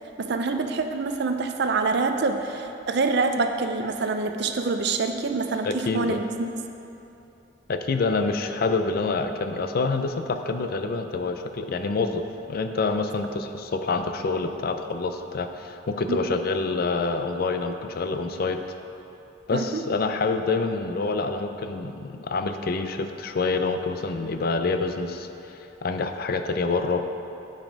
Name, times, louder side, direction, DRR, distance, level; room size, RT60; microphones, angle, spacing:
voice 1, 0.2-6.2 16.1-16.2 19.5-19.8, right 3 dB, 60° right, 6 dB, 0.5 m, -26 dB
voice 2, 5.6-6.2 7.7-12.2 12.5-18.6 19.5-27.0, left 3 dB, 55° left, 7 dB, 0.5 m, -27 dB
9.0 x 5.1 x 5.2 m, 2.9 s
head